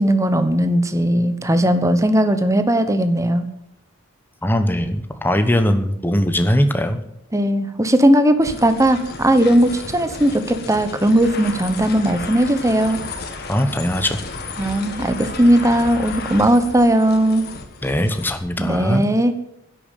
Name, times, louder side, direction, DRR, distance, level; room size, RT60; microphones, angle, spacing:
voice 1, 0.0-3.5 7.3-13.0 14.6-17.5 18.6-19.3, right 1 dB, 15° right, 10 dB, 1.1 m, -17 dB
voice 2, 4.4-7.0 13.5-14.2 17.8-19.0, left 1 dB, 10° left, 8 dB, 1.1 m, -20 dB
sound 1, 8.4-18.4, left 3 dB, 50° left, 2.0 m, -33 dB
11.0 x 8.7 x 9.2 m, 0.78 s
head